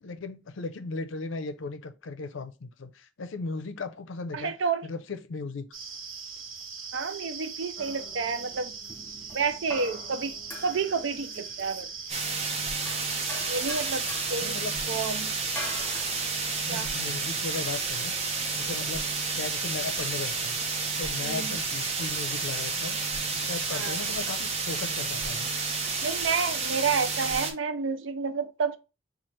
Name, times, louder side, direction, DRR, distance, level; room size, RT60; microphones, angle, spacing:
voice 1, 0.0-4.5 4.8-5.7 14.4-14.8 16.6-18.2 18.5-19.1 19.3-20.6 21.0-23.0 23.3-25.5, left 3 dB, 75° left, 0.5 m, -36 dB
voice 2, 4.3-4.9 6.9-8.7 9.3-10.4 10.6-11.9 13.5-14.6 14.9-15.3 16.7-16.9 21.2-21.6 23.7-24.0 26.0-28.8, right 5 dB, 70° right, 0.5 m, -30 dB
sound 1, 5.7-12.2, right 5 dB, 90° right, 1.1 m, -40 dB
sound 2, 7.8-16.9, left 2 dB, 10° left, 0.7 m, -45 dB
sound 3, 12.1-27.5, right 4 dB, 30° right, 0.7 m, -30 dB
5.7 x 2.4 x 3.1 m
head